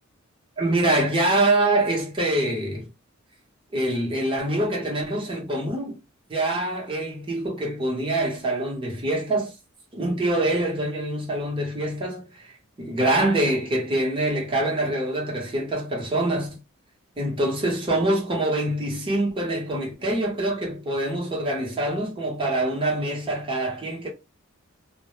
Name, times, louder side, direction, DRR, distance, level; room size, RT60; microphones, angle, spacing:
voice 1, 0.6-2.9 3.7-6.0 6.3-9.5 9.9-12.3 12.8-16.6 17.2-24.1, right 1 dB, 25° right, 0.8 m, -25 dB
2.1 x 2.1 x 3.0 m
head